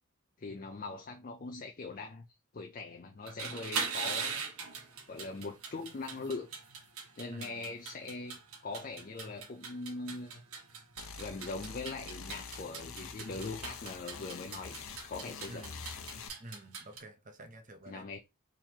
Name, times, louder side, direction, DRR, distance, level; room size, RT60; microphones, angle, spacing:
voice 1, 0.4-2.3 2.5-4.5 5.1-6.5 7.2-10.4 11.2-15.7 17.9-18.2, left 3 dB, 40° left, 0.4 m, -41 dB
sound 1, 3.2-17.0, right 5 dB, 85° right, 1.2 m, -41 dB
voice 2, 7.3-7.8 15.5-15.9 16.4-18.1, right 1 dB, 35° right, 0.7 m, -49 dB
sound 2, 11.0-16.3, left 5 dB, 75° left, 0.8 m, -46 dB
3.7 x 3.0 x 4.4 m
head